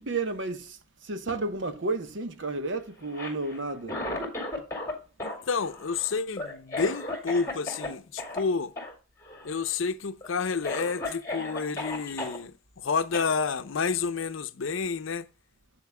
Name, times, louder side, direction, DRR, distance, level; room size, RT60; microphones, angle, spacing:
voice 1, 0.0-4.0, right 3 dB, 70° right, 0.9 m, -32 dB
Cough, 3.0-4.9 5.2-7.9 8.2-8.4 8.8-8.9 9.2-9.7 10.2-10.3 10.6-12.4 13.1-13.3, left 2 dB, 15° left, 2.2 m, -35 dB
voice 2, 5.2-8.7 9.4-15.3, left 5 dB, 85° left, 0.6 m, -30 dB
9.4 x 7.6 x 2.2 m
head